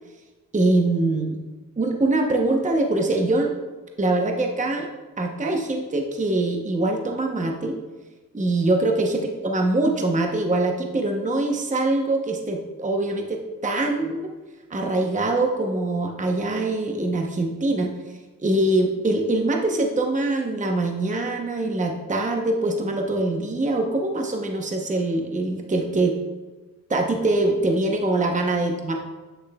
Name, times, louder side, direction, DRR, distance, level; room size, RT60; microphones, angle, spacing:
voice 1, 0.5-1.4 1.8-3.5 4.0-4.9 5.2-7.8 8.3-14.3 14.7-17.9 18.4-26.2 26.9-29.0, right 2 dB, 20° right, 2 dB, 0.8 m, -23 dB
8.2 x 6.8 x 2.2 m, 1.3 s
cardioid pair, 55°, 34 cm